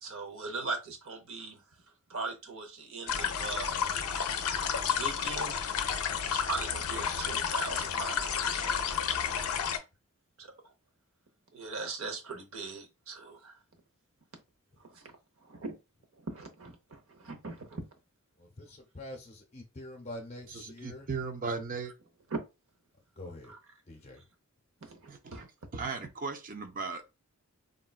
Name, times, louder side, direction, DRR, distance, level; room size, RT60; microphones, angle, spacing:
voice 1, 0.0-1.6 2.1-3.9 4.8-5.6 6.2-9.1 10.4-10.7 11.5-13.6 14.8-15.1 15.4-15.7 16.2-17.8 22.3-22.4 23.5-23.6 24.8-25.0 25.3-25.5, right 3 dB, 65° right, 0.7 m, -40 dB
sound 1, 3.1-9.8, left 7 dB, 80° left, 0.4 m, -31 dB
voice 2, 6.1-6.4 18.4-21.1 23.2-23.5 23.9-24.2, left 1 dB, 30° left, 0.7 m, -45 dB
voice 3, 20.5-21.9 25.1-25.5 25.7-27.0, right 4 dB, 40° right, 0.4 m, -37 dB
3.7 x 2.2 x 2.3 m
head